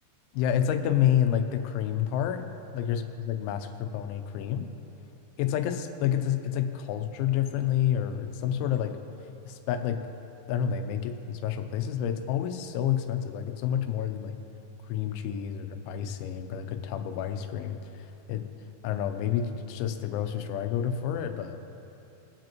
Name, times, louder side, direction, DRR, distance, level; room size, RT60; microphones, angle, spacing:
voice 1, 0.3-2.5 2.7-4.7 5.4-9.0 9.5-10.0 10.5-14.4 14.9-18.4 18.8-21.6, left 9 dB, 90° left, 7 dB, 3.1 m, -29 dB
21.5 x 7.7 x 3.0 m, 3.0 s
omnidirectional pair, 5.3 m